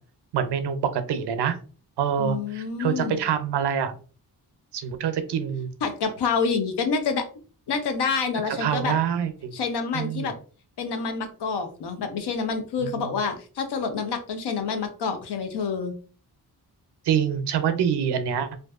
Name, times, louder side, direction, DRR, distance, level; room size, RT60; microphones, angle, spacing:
voice 1, 0.3-1.6 2.0-3.9 4.7-5.7 8.5-9.5 9.9-10.3 12.8-13.0 17.1-18.6, right 8 dB, 85° right, 9 dB, 0.5 m, -26 dB
voice 2, 2.2-3.2 5.8-7.3 7.7-9.0 9.5-10.3 10.8-15.9, left 5 dB, 85° left, 6 dB, 0.6 m, -27 dB
2.5 x 2.2 x 2.3 m, 0.38 s
wide cardioid pair, 100°, 39 cm